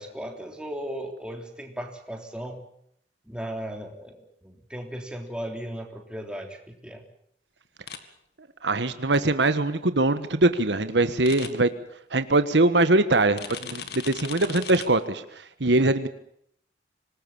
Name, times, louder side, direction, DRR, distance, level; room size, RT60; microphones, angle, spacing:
voice 1, 0.0-2.6 3.3-7.0, equal, 5° right, 3 dB, 3.5 m, -36 dB
sound 1, 7.9-8.0 11.2-11.5 13.4-14.9, left 8 dB, 60° left, 2.2 m, -37 dB
voice 2, 8.6-11.7 12.1-16.1, right 2 dB, 75° right, 11 dB, 1.4 m, -22 dB
26.0 x 19.0 x 7.2 m, 0.70 s
head